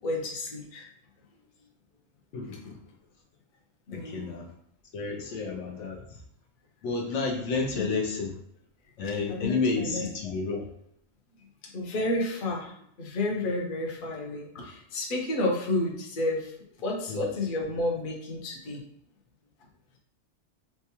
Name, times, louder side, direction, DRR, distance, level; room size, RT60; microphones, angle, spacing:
voice 1, 0.0-0.9 2.5-2.6 3.9-4.3 7.7-7.9 9.3-10.1 11.4-12.7 13.0-18.8, left 2 dB, 50° left, -1 dB, 0.9 m, -31 dB
voice 2, 2.3-2.8 3.9-4.5 4.9-6.0 6.8-8.3 9.0-10.7 17.1-17.2, left 4 dB, 75° left, 0 dB, 1.0 m, -30 dB
4.4 x 2.2 x 2.8 m, 0.71 s
omnidirectional pair, 1.2 m